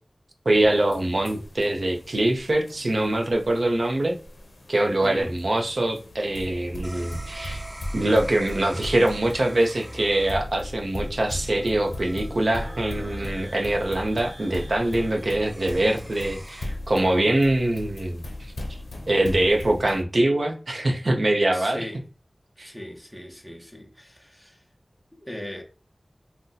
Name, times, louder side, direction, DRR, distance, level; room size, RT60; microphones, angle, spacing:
sound 1, 0.5-20.0, left 1 dB, 90° left, 0.5 m, -38 dB
voice 1, 0.5-4.2 4.7-7.6 7.9-18.2 19.1-21.8 22.6-22.7, right 1 dB, 65° right, 0.6 m, -23 dB
voice 2, 5.0-5.4 21.5-22.0 22.6-24.6 25.1-25.6, equal, ahead, 0.7 m, -39 dB
sound 2, 6.8-16.6, equal, 25° right, 1.1 m, -44 dB
2.7 x 2.1 x 3.8 m
wide cardioid pair, 65°, 0 cm